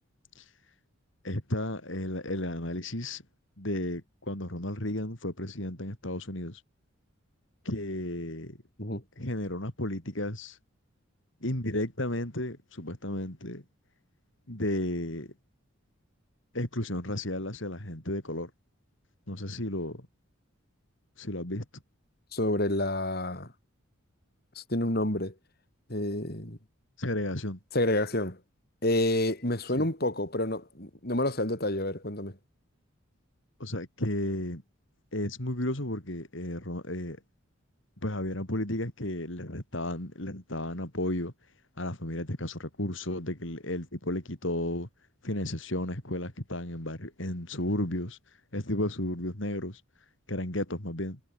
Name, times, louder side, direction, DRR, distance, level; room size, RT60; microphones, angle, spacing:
voice 1, 1.2-3.2 3.6-6.6 7.6-8.6 9.2-10.6 11.4-13.6 14.5-15.3 16.5-18.5 19.3-20.1 21.2-21.7 27.0-27.6 29.7-29.9 33.6-34.6 35.1-37.2 38.0-41.3 41.8-44.9 45.2-49.8 50.3-51.2, left 1 dB, 60° left, 4.0 m, -33 dB
voice 2, 22.3-23.5 24.5-25.3 25.9-26.6 27.7-28.4 28.8-32.3, left 1 dB, 45° left, 4.7 m, -29 dB
head